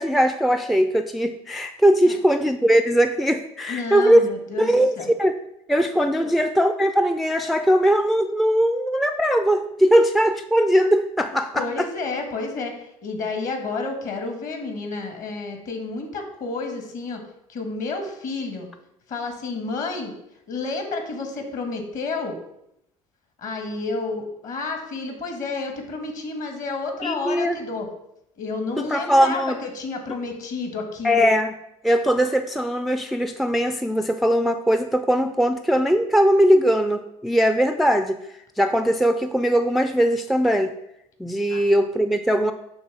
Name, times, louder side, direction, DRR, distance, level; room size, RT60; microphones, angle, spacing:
voice 1, 0.0-4.2 4.6-5.4 5.7-11.9 27.0-27.6 28.8-29.5 31.0-31.5 31.8-38.2 38.6-40.7 41.2-42.5, equal, ahead, 7 dB, 0.3 m, -20 dB
voice 2, 3.7-5.1 6.2-6.3 11.5-17.2 17.5-18.7 19.1-20.1 20.5-22.4 23.4-27.9 28.4-31.3 41.5-41.6, left 3 dB, 50° left, 5 dB, 1.5 m, -30 dB
6.3 x 3.4 x 5.8 m, 0.80 s
hypercardioid pair, 70°, 18 cm